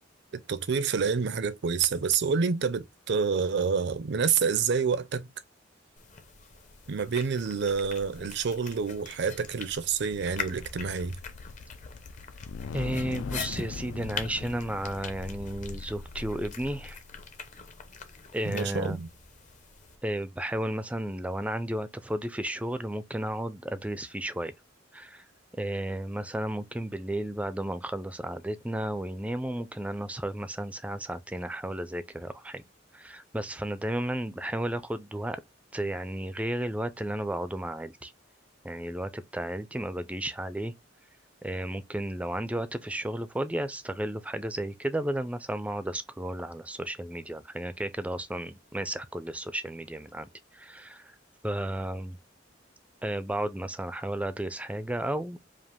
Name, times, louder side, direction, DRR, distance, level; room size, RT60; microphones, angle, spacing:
voice 1, 0.3-5.3 6.9-11.2 18.5-19.1, right 6 dB, 60° right, 0.5 m, -28 dB
sound 1, 6.0-20.0, left 6 dB, 40° left, 0.8 m, -43 dB
sound 2, 9.1-17.3, left 4 dB, 70° left, 0.4 m, -41 dB
voice 2, 12.7-17.0 18.3-19.0 20.0-24.5 24.9-25.3 25.5-32.6 32.9-35.4 35.7-38.1 38.6-40.7 41.4-51.1 51.4-52.2 53.0-55.4, right 1 dB, 5° right, 0.4 m, -33 dB
5.0 x 2.4 x 3.5 m
head